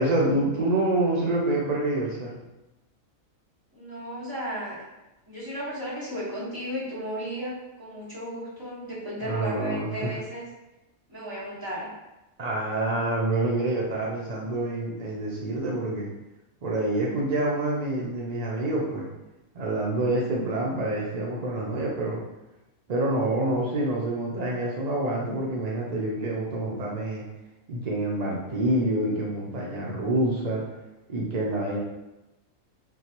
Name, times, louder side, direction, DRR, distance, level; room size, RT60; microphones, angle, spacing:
voice 1, 0.0-2.4 9.2-10.1 12.4-16.1 16.6-19.1 19.5-22.2 22.9-27.2 27.7-30.6 31.1-31.8, right 1 dB, 75° right, -3 dB, 0.3 m, -27 dB
voice 2, 3.7-4.8 5.3-10.4 11.1-11.9, equal, 15° right, -10 dB, 1.4 m, -34 dB
3.6 x 2.7 x 2.9 m, 0.99 s
omnidirectional pair, 1.4 m